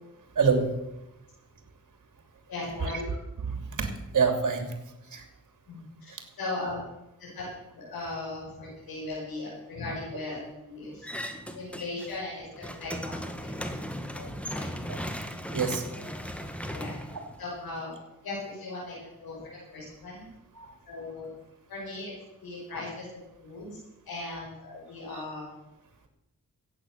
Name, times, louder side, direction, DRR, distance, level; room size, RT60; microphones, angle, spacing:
voice 1, 0.4-0.7 2.8-2.9 3.5-4.7 5.1-5.2 14.9-15.0 15.5-15.8 20.6-20.7, right 5 dB, 60° right, 5 dB, 2.9 m, -26 dB
voice 2, 2.5-3.1 5.7-6.1 6.4-6.9 7.2-7.4 7.7-10.4 10.6-11.1 11.5-13.2 13.6-13.8 14.1-14.7 16.7-16.9 17.4-17.9 18.2-18.9 19.2-20.3 20.9-21.3 21.7-22.1 22.4-23.8 24.1-25.5, left 2 dB, 90° left, -5 dB, 5.8 m, -38 dB
sound 1, 11.0-12.2 12.5-17.8, equal, 5° left, 1.7 m, -37 dB
14.0 x 9.0 x 6.7 m, 0.93 s
cardioid pair, 60°, 35 cm